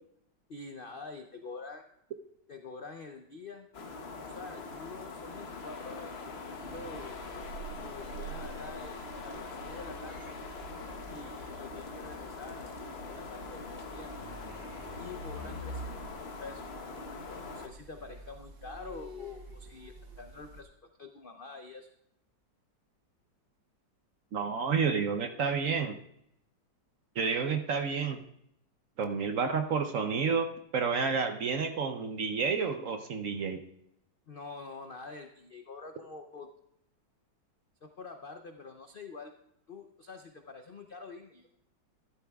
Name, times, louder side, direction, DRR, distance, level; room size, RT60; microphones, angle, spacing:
voice 1, 0.5-1.9 2.5-3.7 4.2-6.4 6.6-7.3 7.8-10.3 11.1-14.1 15.0-16.6 17.3-20.7 21.0-21.9 34.3-36.5 37.8-39.3 39.7-41.5, left 4 dB, 75° left, 5 dB, 0.5 m, -46 dB
sound 1, 3.7-17.7, left 3 dB, 45° left, 1.0 m, -43 dB
sound 2, 6.6-20.6, right 2 dB, 85° right, 2.0 m, -48 dB
voice 2, 24.3-26.0 27.2-28.2 29.0-33.6, right 5 dB, 60° right, 7 dB, 0.9 m, -30 dB
14.0 x 11.5 x 2.3 m, 0.77 s
omnidirectional pair, 2.0 m